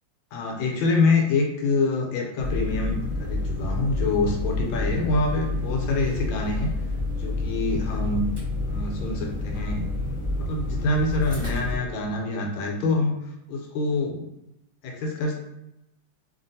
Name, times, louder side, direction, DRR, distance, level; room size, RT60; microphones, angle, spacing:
voice 1, 0.3-6.7 7.1-8.2 8.7-13.1 13.5-14.2 14.8-15.3, left 3 dB, 75° left, 0 dB, 1.3 m, -26 dB
sound 1, 2.4-11.8, left 2 dB, 35° right, 0.4 m, -29 dB
3.3 x 2.5 x 2.6 m, 0.87 s
omnidirectional pair, 2.2 m